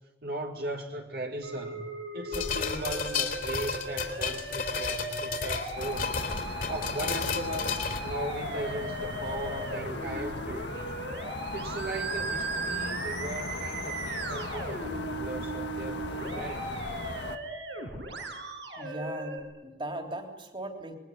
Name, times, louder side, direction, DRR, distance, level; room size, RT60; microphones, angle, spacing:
voice 1, 0.2-1.9 2.1-6.2 6.7-10.9 11.5-16.8, right 1 dB, 60° right, 2 dB, 2.1 m, -38 dB
Musical instrument, 1.4-19.4, right 2 dB, 80° right, 6.5 m, -37 dB
sound 1, 2.3-8.0, left 5 dB, 50° left, 3.2 m, -33 dB
sound 2, 5.8-17.4, left 2 dB, 80° left, 1.7 m, -38 dB
voice 2, 18.8-21.0, right 1 dB, 30° right, 4 dB, 3.4 m, -38 dB
27.0 x 22.0 x 9.9 m, 1.1 s
head